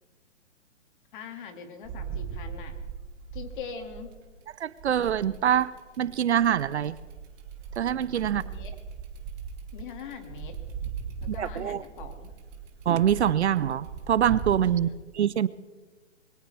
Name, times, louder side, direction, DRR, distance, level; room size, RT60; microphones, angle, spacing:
voice 1, 1.1-2.7 3.3-4.1 8.3-8.7 9.7-10.6 11.2-12.3 14.7-15.1, left 6 dB, 40° left, 6 dB, 2.3 m, -42 dB
sound 1, 1.8-4.3 4.8-14.7, right 6 dB, 20° right, 1.8 m, -39 dB
voice 2, 4.6-7.0 7.8-8.4 11.3-11.8 12.9-15.5, right 10 dB, 65° right, 19 dB, 0.6 m, -25 dB
22.0 x 17.0 x 3.4 m, 1.3 s
hypercardioid pair, 145°, 37 cm